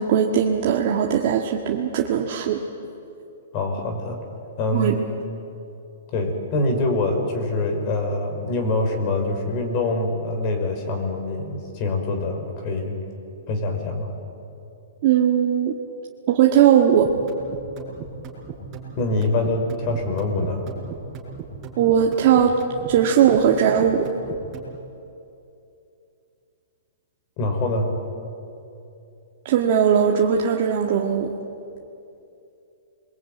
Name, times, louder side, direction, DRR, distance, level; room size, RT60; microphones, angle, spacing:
voice 1, 0.0-2.6 4.7-5.0 15.0-15.7 16.3-17.1 21.8-22.5 22.9-24.1 29.5-31.3, right 8 dB, 45° right, 0 dB, 1.7 m, -19 dB
voice 2, 3.5-4.2 4.6-5.0 6.1-13.0 13.5-14.1 18.9-20.7 27.4-27.9, left 2 dB, 35° left, 4 dB, 5.2 m, -24 dB
sound 1, 17.0-24.8, right 5 dB, 25° right, 5.7 m, -37 dB
28.0 x 22.5 x 9.2 m, 2.7 s
hypercardioid pair, 155°, 0 cm